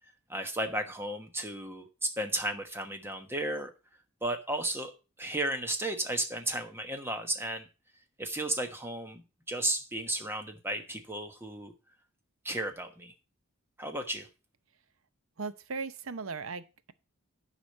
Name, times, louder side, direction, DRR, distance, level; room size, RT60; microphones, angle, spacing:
voice 1, 0.3-3.7 4.2-4.9 5.2-7.7 8.2-9.2 9.5-11.7 12.4-13.1 13.8-14.3, right 1 dB, 10° right, 6 dB, 1.2 m, -34 dB
voice 2, 15.4-16.9, right 4 dB, 70° right, 14 dB, 0.7 m, -38 dB
9.9 x 5.0 x 6.5 m, 0.31 s
head